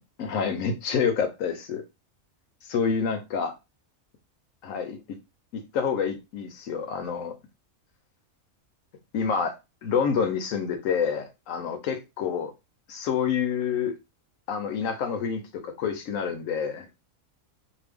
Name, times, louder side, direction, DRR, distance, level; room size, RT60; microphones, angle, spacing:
voice 1, 0.2-1.8 2.7-3.5 4.6-5.0 5.5-7.3 9.1-9.5 9.8-12.5 12.9-13.9 14.5-16.9, left 6 dB, 75° left, 0.9 m, -28 dB
2.6 x 2.2 x 3.4 m
omnidirectional pair, 1.4 m